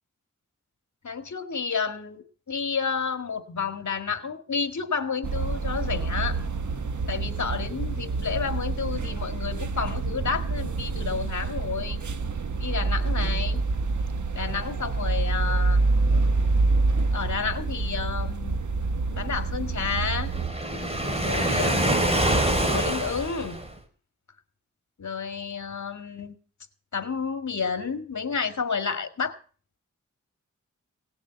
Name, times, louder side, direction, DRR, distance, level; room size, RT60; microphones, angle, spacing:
voice 1, 1.0-6.4 7.1-12.0 12.6-13.6 14.3-15.8 17.1-18.6 19.1-20.3 21.2-22.0 22.6-23.6 25.0-26.4 26.9-29.3, left 5 dB, 70° left, 8 dB, 2.1 m, -30 dB
sound 1, 5.2-20.5, right 3 dB, 75° right, 1.3 m, -27 dB
Waves surf, 20.3-23.8, right 1 dB, 20° right, 3.6 m, -25 dB
18.0 x 7.1 x 8.3 m, 0.40 s
wide cardioid pair, 65°, 30 cm